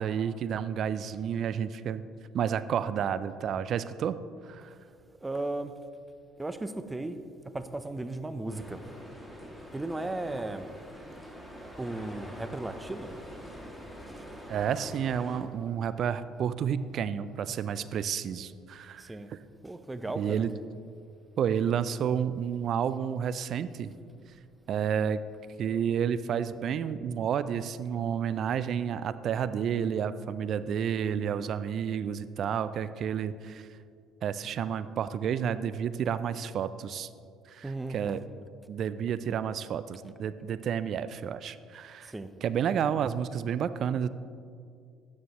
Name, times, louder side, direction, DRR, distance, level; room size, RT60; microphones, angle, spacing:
voice 1, 0.0-2.0 2.3-4.2 4.4-4.7 14.5-19.4 20.2-20.5 21.4-23.9 24.7-25.2 25.6-33.7 34.2-37.1 37.5-38.2 38.7-42.1 42.4-44.1, right 8 dB, 55° right, 14 dB, 0.4 m, -30 dB
voice 2, 5.2-5.7 6.4-7.2 7.5-8.8 9.7-10.6 11.8-13.2 19.0-19.3 19.6-20.5 37.6-38.2 42.0-42.3, right 2 dB, 15° right, 11 dB, 0.7 m, -35 dB
sound 1, 8.5-15.4, equal, ahead, 2.2 m, -45 dB
12.5 x 9.4 x 3.0 m, 2.3 s
hypercardioid pair, 60°, 0 cm